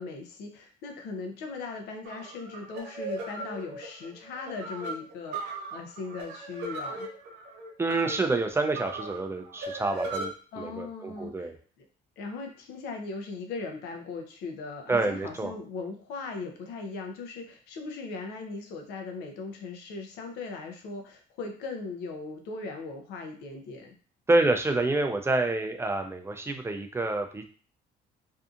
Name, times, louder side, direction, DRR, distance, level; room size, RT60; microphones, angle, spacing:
voice 1, 0.0-7.1 10.5-11.5 11.8-11.9 12.2-23.9, left 3 dB, 80° left, 4 dB, 0.6 m, -39 dB
sound 1, 2.1-10.3, right 2 dB, 85° right, 0.7 m, -38 dB
voice 2, 7.8-11.5 14.9-15.5 24.3-27.5, right 2 dB, 15° right, 5 dB, 0.3 m, -28 dB
2.6 x 2.4 x 2.4 m, 0.41 s
cardioid pair, 110°, 17 cm